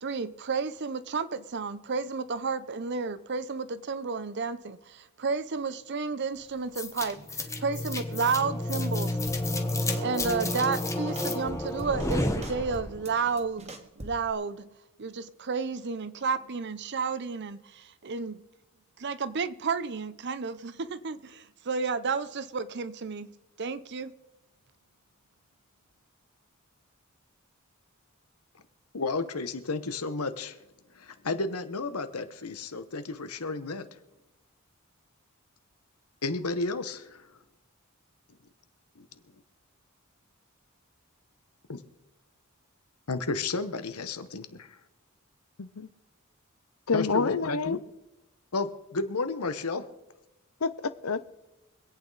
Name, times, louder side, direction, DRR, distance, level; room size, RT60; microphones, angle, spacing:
voice 1, 0.0-9.2 10.0-18.4 19.0-23.3 23.6-24.1, right 5 dB, 50° right, 0.7 m, -32 dB
sound 1, 6.8-13.1, left 1 dB, 15° left, 1.1 m, -31 dB
sound 2, 9.3-9.6 9.9-10.6 10.8-12.1 12.4-14.3, right 1 dB, 30° right, 1.5 m, -43 dB
voice 2, 28.9-30.6 30.9-33.8 36.2-37.3 39.0-39.1 41.7-41.8 43.1-44.8 46.9-47.8 48.5-49.8, left 3 dB, 85° left, 1.1 m, -32 dB
voice 3, 46.9-47.8 50.6-51.4, left 4 dB, 70° left, 0.7 m, -28 dB
25.0 x 8.8 x 4.0 m
head